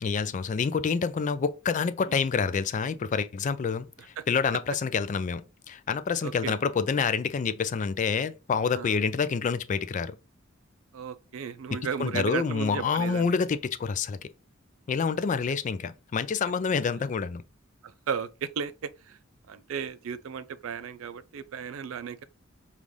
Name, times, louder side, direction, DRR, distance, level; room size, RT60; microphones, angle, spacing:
voice 1, 0.0-5.4 5.7-10.2 11.7-14.3 14.9-17.4, left 5 dB, 40° left, 0.3 m, -27 dB
voice 2, 6.2-6.6 8.7-9.0 10.9-13.3 17.8-19.2 19.5-22.2, right 7 dB, 80° right, 0.4 m, -35 dB
5.3 x 2.4 x 3.1 m
head